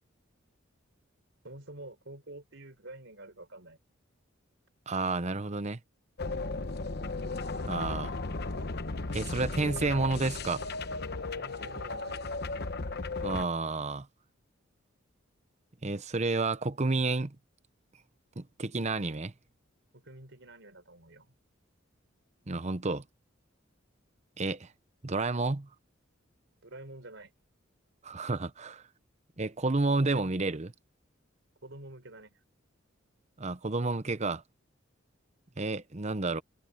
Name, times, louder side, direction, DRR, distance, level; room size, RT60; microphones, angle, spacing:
voice 1, 1.4-3.8 11.3-12.2 19.9-21.3 26.6-27.3 31.6-32.4, right 2 dB, 65° right, 4.5 m, -48 dB
voice 2, 4.9-5.8 7.6-8.1 9.1-10.7 13.2-14.1 15.8-17.4 18.4-19.3 22.5-23.0 24.4-24.7 25.0-25.7 28.0-28.8 29.4-30.7 33.4-34.4 35.6-36.4, right 3 dB, 35° right, 0.9 m, -30 dB
sound 1, 6.2-13.5, left 3 dB, 55° left, 1.0 m, -35 dB
head